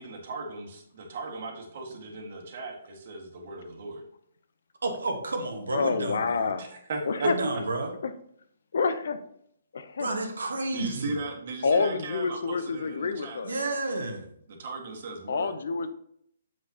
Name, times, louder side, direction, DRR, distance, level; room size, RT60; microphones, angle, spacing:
voice 1, 0.0-4.0 6.6-7.3 7.8-7.9 10.7-13.8 14.5-15.5, right 3 dB, 55° right, 1 dB, 1.8 m, -37 dB
voice 2, 4.8-6.5 7.2-7.9 10.0-11.1 13.4-14.3, right 2 dB, 85° right, 4 dB, 1.4 m, -31 dB
voice 3, 5.7-6.6 7.1-7.3 8.0-8.1 8.7-9.2 9.7-10.1 11.6-13.5 15.3-15.9, left 4 dB, 70° left, 11 dB, 0.7 m, -27 dB
7.3 x 6.2 x 2.9 m, 0.69 s
hypercardioid pair, 145°, 0 cm